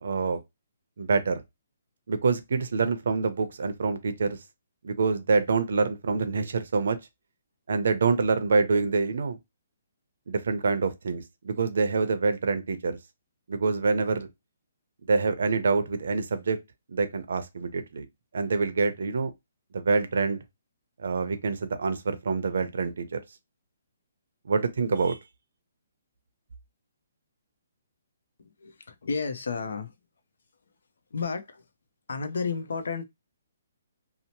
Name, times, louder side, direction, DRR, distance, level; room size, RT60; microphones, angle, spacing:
voice 1, 0.0-0.4 1.0-1.4 2.1-4.4 4.8-7.0 7.7-9.4 10.3-13.0 13.5-14.3 15.1-16.6 16.9-18.1 18.3-19.3 19.7-20.4 21.0-23.2 24.4-25.2, right 4 dB, 70° right, 0.6 m, -26 dB
voice 2, 28.6-29.9 31.1-31.6 32.1-33.0, left 5 dB, 75° left, 0.6 m, -32 dB
2.8 x 2.0 x 2.8 m
hypercardioid pair, 165°, 0 cm